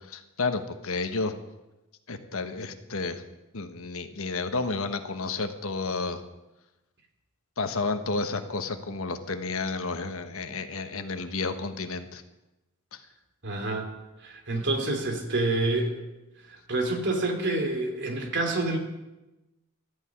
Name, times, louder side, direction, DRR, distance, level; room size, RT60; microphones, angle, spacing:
voice 1, 0.1-1.3 2.1-3.2 3.5-6.2 7.6-12.2 12.9-13.0, left 3 dB, 70° left, 8 dB, 1.2 m, -31 dB
voice 2, 13.4-13.9 14.2-16.0 16.5-18.8, right 2 dB, 55° right, 3 dB, 2.9 m, -28 dB
13.5 x 9.0 x 9.9 m, 1.0 s
head